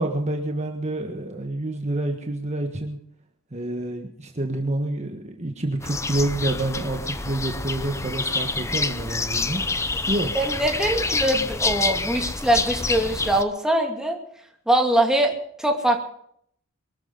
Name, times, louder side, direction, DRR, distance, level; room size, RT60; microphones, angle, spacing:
voice 1, 0.0-3.0 3.5-9.6 10.1-10.3, right 1 dB, 30° right, 3 dB, 1.5 m, -28 dB
sound 1, 5.8-13.4, left 3 dB, 15° left, 0.6 m, -27 dB
voice 2, 10.3-14.2 14.7-15.3 15.6-16.0, right 1 dB, 5° right, 1 dB, 2.4 m, -22 dB
23.0 x 13.5 x 4.0 m, 0.66 s
head